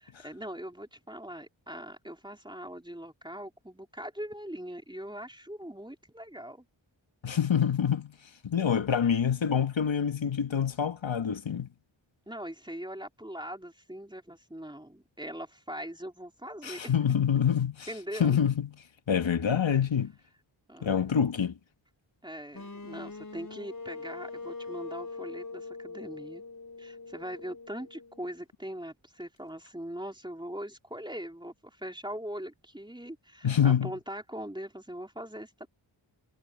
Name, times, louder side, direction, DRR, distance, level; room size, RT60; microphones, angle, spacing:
voice 1, 0.2-6.7 12.3-16.9 17.9-18.4 20.7-21.2 22.2-26.4 26.8-35.7, equal, 10° right, 3.4 m, -41 dB
voice 2, 7.2-8.1 8.4-11.7 16.6-17.9 18.2-18.7 19.1-20.1 20.8-21.5 33.4-33.9, left 8 dB, 70° left, 1.5 m, -26 dB
sound 1, 22.5-28.4, left 3 dB, 40° left, 4.5 m, -43 dB
wide cardioid pair, 55°, 47 cm